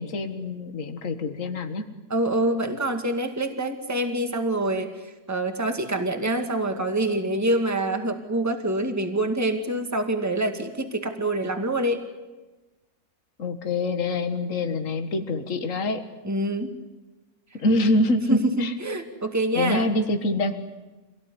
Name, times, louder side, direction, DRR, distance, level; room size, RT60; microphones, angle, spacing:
voice 1, 0.0-1.8 13.4-16.0 17.6-18.7 19.6-20.6, left 2 dB, 55° left, 7 dB, 2.0 m, -25 dB
voice 2, 2.1-12.0 16.2-16.8 18.3-19.9, right 1 dB, 10° right, 6 dB, 2.1 m, -26 dB
26.0 x 18.0 x 9.8 m, 1.1 s
omnidirectional pair, 1.6 m